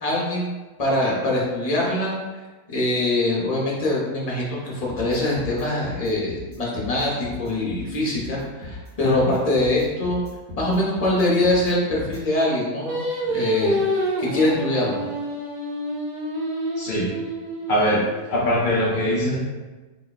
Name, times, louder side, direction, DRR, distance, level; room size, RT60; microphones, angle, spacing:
voice 1, 0.0-2.1 2.7-10.2 10.6-15.0, left 1 dB, 30° left, -5 dB, 0.8 m, -23 dB
sound 1, 4.9-12.2, left 2 dB, 90° right, 1.9 m, -38 dB
Singing, 12.9-18.1, right 1 dB, 55° right, 0.5 m, -27 dB
voice 2, 16.8-17.1 17.7-19.4, equal, 60° left, -6 dB, 0.5 m, -22 dB
3.9 x 2.3 x 3.9 m, 1.2 s
omnidirectional pair, 1.6 m